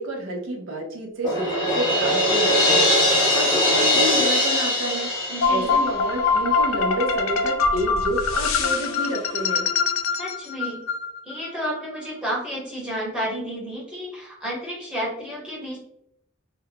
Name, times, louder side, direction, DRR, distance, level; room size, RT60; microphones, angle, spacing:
voice 1, 0.0-5.1 5.5-9.7, right 1 dB, 80° right, 0 dB, 0.6 m, -29 dB
Crash cymbal, 1.2-6.2, left 1 dB, 20° left, 1.0 m, -21 dB
voice 2, 5.3-5.8 10.2-10.9 11.2-15.8, equal, 5° right, -7 dB, 1.0 m, -31 dB
sound 1, 5.4-11.5, left 4 dB, 85° left, 0.4 m, -23 dB
2.3 x 2.2 x 3.4 m, 0.76 s
head